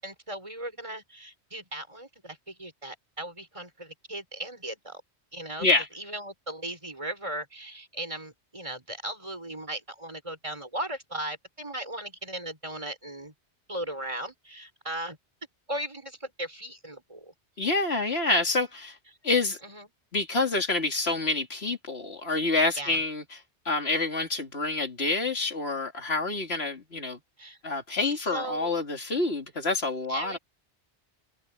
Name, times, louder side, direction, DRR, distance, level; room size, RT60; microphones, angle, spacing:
voice 1, 0.0-5.0 5.3-5.7 5.9-13.3 13.7-15.2 15.7-17.7 19.6-19.9 22.8-23.0 27.4-27.6 28.0-28.7 30.1-30.4, right 1 dB, 30° right, 6.8 m, -37 dB
voice 2, 17.6-19.0 19.2-19.6 20.1-23.2 23.6-27.2 27.6-30.4, left 3 dB, 65° left, 3.1 m, -27 dB
omnidirectional pair, 1.1 m